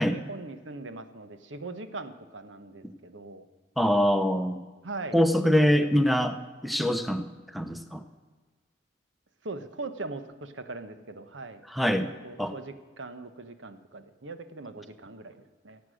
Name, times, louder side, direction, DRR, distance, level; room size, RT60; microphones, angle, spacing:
voice 1, 0.0-3.5 4.8-5.2 5.7-5.9 9.4-11.6 12.0-15.8, right 3 dB, 85° right, 10 dB, 1.0 m, -40 dB
voice 2, 3.8-4.6 5.1-8.0 11.7-12.1 12.4-12.5, equal, ahead, 9 dB, 0.7 m, -24 dB
16.0 x 8.3 x 6.3 m, 1.3 s
head